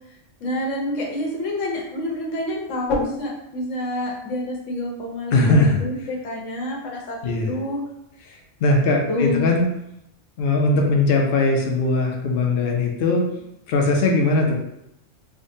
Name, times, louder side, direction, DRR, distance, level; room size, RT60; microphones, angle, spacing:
voice 1, 0.4-7.8 9.1-9.4, left 1 dB, 75° left, -2 dB, 1.2 m, -27 dB
voice 2, 5.3-5.8 7.2-7.5 8.3-9.7 10.4-13.4 13.7-14.6, left 2 dB, 60° left, 0 dB, 0.7 m, -20 dB
4.8 x 2.2 x 2.6 m, 0.82 s
omnidirectional pair, 1.3 m